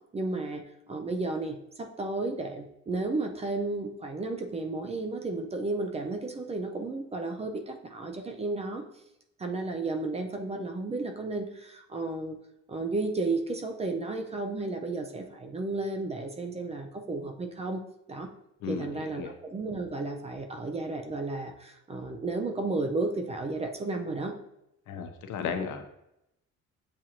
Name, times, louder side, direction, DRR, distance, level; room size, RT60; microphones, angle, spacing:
voice 1, 0.1-8.8 9.4-12.4 12.7-17.8 18.1-18.3 18.7-24.3, right 3 dB, 20° right, 4 dB, 0.4 m, -33 dB
voice 2, 18.6-19.3 24.9-25.8, left 6 dB, 85° left, 6 dB, 0.7 m, -35 dB
7.4 x 2.5 x 2.8 m, 0.82 s
cardioid pair, 155°, 30 cm